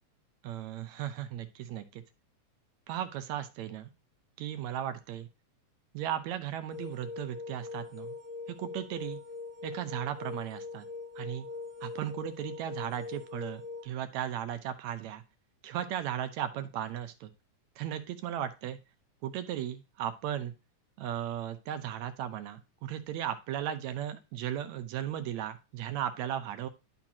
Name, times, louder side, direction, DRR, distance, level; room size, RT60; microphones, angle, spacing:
voice 1, 0.4-2.0 2.9-3.9 4.4-5.3 5.9-8.2 8.5-9.2 9.6-10.9 11.2-11.5 11.8-15.2 15.6-17.3 17.8-18.8 19.2-20.5 21.0-26.7, right 10 dB, 75° right, 10 dB, 2.1 m, -36 dB
sound 1, 6.7-13.8, left 4 dB, 20° left, 0.8 m, -42 dB
11.5 x 4.5 x 2.8 m, 0.29 s
omnidirectional pair, 3.3 m